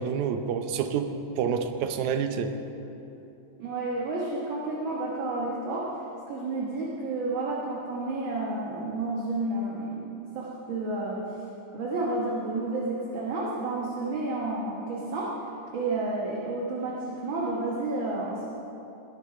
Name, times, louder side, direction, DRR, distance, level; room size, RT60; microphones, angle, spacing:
voice 1, 0.0-2.5, right 7 dB, 75° right, 7 dB, 2.1 m, -28 dB
voice 2, 3.6-5.9 6.3-11.2 11.7-15.3 15.7-18.5, right 2 dB, 50° right, -4 dB, 1.6 m, -31 dB
20.0 x 8.4 x 4.8 m, 2.9 s
omnidirectional pair, 3.5 m